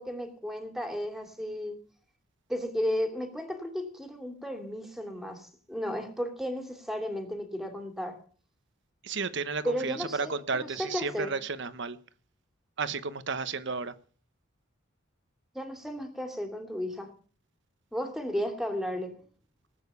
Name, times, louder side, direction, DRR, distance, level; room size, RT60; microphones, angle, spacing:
voice 1, 0.0-1.8 2.5-8.2 9.6-11.4 15.5-17.1 17.9-19.2, equal, ahead, 2.8 m, -34 dB
voice 2, 9.0-12.0 12.8-13.9, right 4 dB, 60° right, 1.1 m, -33 dB
19.0 x 9.0 x 6.9 m
head